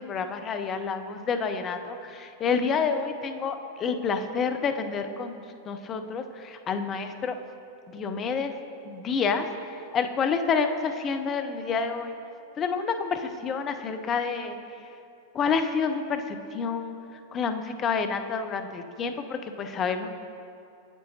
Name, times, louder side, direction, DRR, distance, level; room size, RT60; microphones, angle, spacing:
voice 1, 0.0-7.4 7.9-8.5 8.9-9.5 9.9-12.2 12.6-14.6 15.3-20.1, left 5 dB, 30° left, 7 dB, 0.4 m, -29 dB
8.9 x 7.5 x 2.7 m, 2.6 s
figure-of-eight pair, 90°, 0 cm